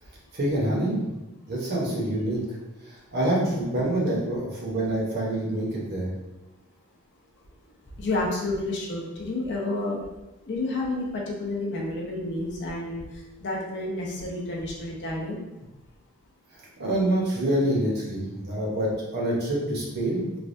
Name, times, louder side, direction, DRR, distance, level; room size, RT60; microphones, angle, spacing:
voice 1, 0.3-1.0 1.5-2.6 2.9-6.1 16.8-20.2, right 1 dB, 50° right, -4 dB, 0.7 m, -26 dB
voice 2, 8.0-10.0 10.5-13.0 13.4-15.4, left 2 dB, 55° left, -2 dB, 0.6 m, -30 dB
3.2 x 2.2 x 2.5 m, 1.0 s
head